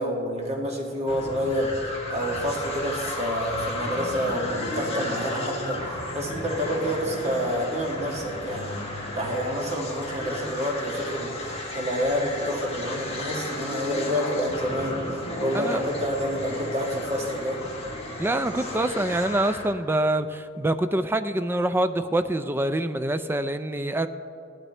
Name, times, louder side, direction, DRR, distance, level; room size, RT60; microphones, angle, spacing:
voice 1, 0.0-11.4 11.7-15.0 15.4-17.6, equal, 35° right, -1 dB, 1.5 m, -28 dB
sound 1, 1.1-19.7, left 1 dB, 30° left, 2.2 m, -33 dB
voice 2, 18.2-24.1, right 1 dB, 10° right, 10 dB, 0.4 m, -25 dB
17.0 x 12.0 x 3.3 m, 2.6 s
head